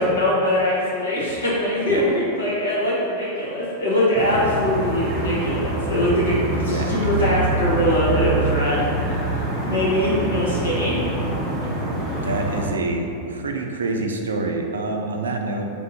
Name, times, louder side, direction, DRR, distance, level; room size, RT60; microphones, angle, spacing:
voice 1, 0.0-8.8 9.1-10.9, left 1 dB, 70° left, -7 dB, 1.1 m, -22 dB
sound 1, 4.1-12.7, right 2 dB, 35° right, 0.8 m, -25 dB
voice 2, 6.5-6.9 12.2-15.7, right 2 dB, 70° right, 3 dB, 0.4 m, -27 dB
3.4 x 2.6 x 4.0 m, 2.7 s
figure-of-eight pair, 90°, 0 cm